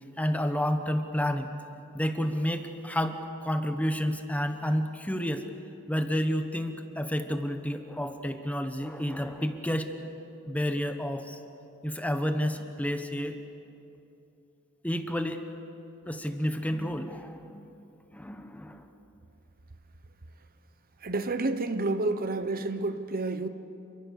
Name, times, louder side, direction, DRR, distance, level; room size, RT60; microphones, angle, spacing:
voice 1, 0.2-1.5 1.9-5.4 5.9-9.9 10.5-11.4 11.8-13.4 14.8-15.5 16.1-17.7 18.1-18.9, equal, 5° left, 1.2 m, -30 dB
voice 2, 21.0-23.5, right 2 dB, 45° right, 1.0 m, -29 dB
29.0 x 23.0 x 6.7 m
head